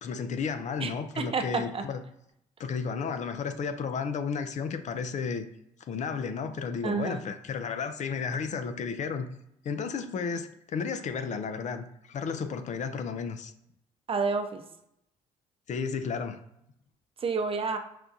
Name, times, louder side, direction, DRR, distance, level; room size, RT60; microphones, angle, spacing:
voice 1, 0.0-2.0 2.6-5.5 5.8-9.3 9.6-13.5 15.7-16.4, left 5 dB, 50° left, 9 dB, 0.5 m, -33 dB
voice 2, 0.8-1.8 6.8-7.3 14.1-14.6 17.2-17.8, right 4 dB, 35° right, 6 dB, 0.7 m, -30 dB
5.9 x 2.2 x 2.6 m, 0.77 s
supercardioid pair, 65°, 15 cm